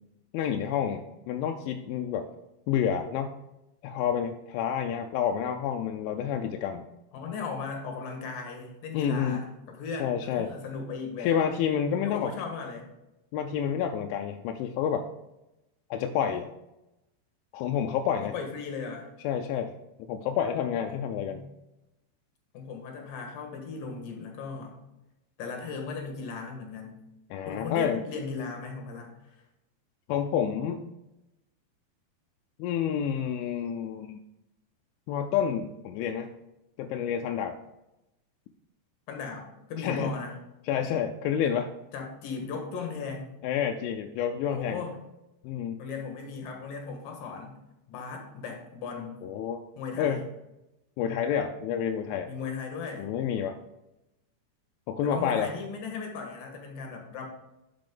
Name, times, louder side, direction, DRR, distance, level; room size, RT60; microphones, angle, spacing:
voice 1, 0.3-2.3 2.7-3.4 3.8-6.8 8.9-9.4 10.0-10.5 11.2-12.3 13.3-15.0 15.9-16.5 17.5-18.3 19.2-19.7 20.1-21.5 27.3-28.0 30.1-30.8 32.6-34.2 35.1-36.3 36.8-37.6 39.8-40.1 40.7-41.7 43.4-44.8 45.4-45.8 49.2-49.6 50.0-50.2 51.0-52.3 53.0-53.6 54.9-55.5, left 8 dB, 85° left, 4 dB, 2.9 m, -29 dB
voice 2, 7.1-11.4 12.0-12.9 18.2-19.1 20.9-21.5 22.5-24.8 25.4-27.0 27.5-29.4 39.1-40.4 41.9-43.3 44.5-45.0 45.8-47.6 47.9-49.2 49.8-50.2 52.3-53.1 55.0-57.3, left 5 dB, 60° left, 2 dB, 2.6 m, -37 dB
10.5 x 6.0 x 3.8 m, 0.92 s
omnidirectional pair, 5.6 m